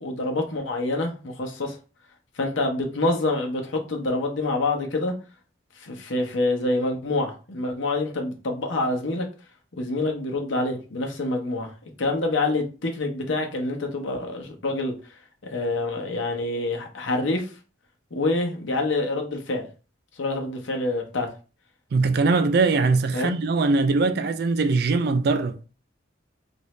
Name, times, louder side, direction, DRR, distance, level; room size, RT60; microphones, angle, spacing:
voice 1, 0.0-1.8 2.4-5.1 5.8-9.3 9.8-11.7 12.0-14.9 15.4-17.5 18.1-19.7 20.2-21.3 23.1-23.4, left 2 dB, 80° left, 0.8 m, -26 dB
voice 2, 21.9-25.6, right 3 dB, 50° right, 0.3 m, -21 dB
2.9 x 2.6 x 3.1 m
head